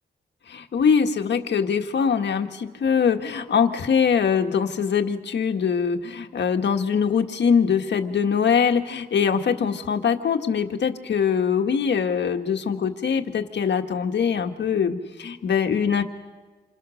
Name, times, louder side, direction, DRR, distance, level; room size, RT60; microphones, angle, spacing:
voice 1, 0.5-16.0, left 6 dB, 75° left, 5 dB, 1.7 m, -22 dB
27.5 x 26.5 x 6.5 m, 1.4 s
wide cardioid pair, 145°, 18 cm